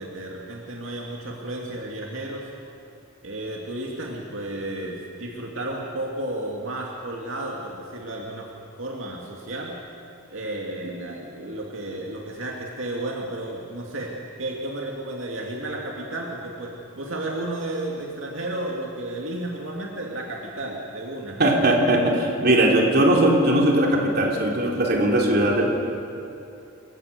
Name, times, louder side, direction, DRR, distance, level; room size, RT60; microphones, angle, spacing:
voice 1, 0.0-2.5 3.2-8.5 8.8-9.8 10.3-14.1 14.4-21.4, right 1 dB, 80° right, -1 dB, 2.3 m, -32 dB
voice 2, 21.4-25.7, right 1 dB, 55° right, -1 dB, 3.3 m, -19 dB
27.0 x 15.5 x 6.6 m, 2.6 s
head